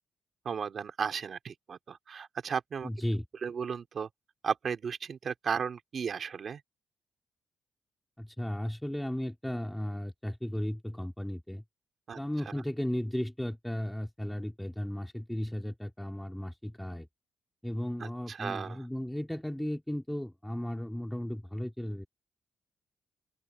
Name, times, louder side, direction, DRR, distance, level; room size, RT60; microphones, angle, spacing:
voice 1, 0.4-2.9 3.4-4.1 4.4-6.6 12.1-12.2 12.4-12.5 18.0-18.8, right 6 dB, 45° right, 3.2 m, -35 dB
voice 2, 2.8-3.2 8.2-11.6 12.2-17.1 17.6-22.1, left 1 dB, 5° left, 2.0 m, -35 dB
open air
cardioid pair, 145°, 0 cm